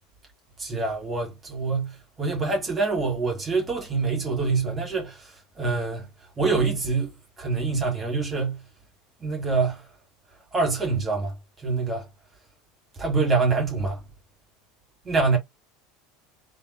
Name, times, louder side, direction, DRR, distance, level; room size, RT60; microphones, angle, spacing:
voice 1, 0.6-5.3 5.6-6.1 6.4-7.1 7.4-8.6 9.2-9.8 10.5-11.3 11.6-12.1 13.0-14.0 15.1-15.4, right 4 dB, 20° right, 2.0 m, -25 dB
3.3 x 2.7 x 3.0 m
figure-of-eight pair, 75°, 0 cm